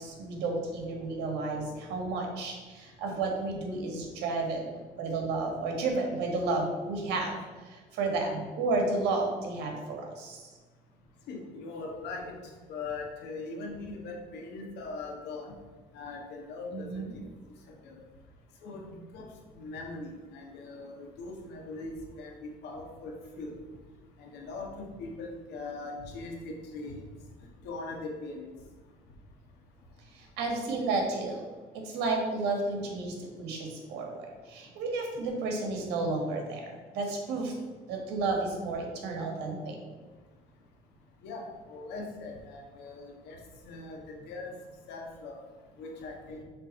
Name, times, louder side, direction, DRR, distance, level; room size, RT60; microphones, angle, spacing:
voice 1, 0.0-4.7 5.0-7.3 7.6-10.4 16.7-17.0 30.1-31.4 31.7-37.5 37.9-39.8, right 3 dB, 90° right, 2 dB, 1.6 m, -32 dB
voice 2, 11.3-12.4 12.7-15.5 15.9-17.2 17.8-18.0 18.6-19.3 19.5-23.5 24.2-27.0 27.6-28.5 41.2-43.4 43.6-44.6 44.9-45.4 45.8-46.4, left 3 dB, 85° left, 1 dB, 1.4 m, -40 dB
6.7 x 3.5 x 5.3 m, 1.4 s
cardioid pair, 110°, 17 cm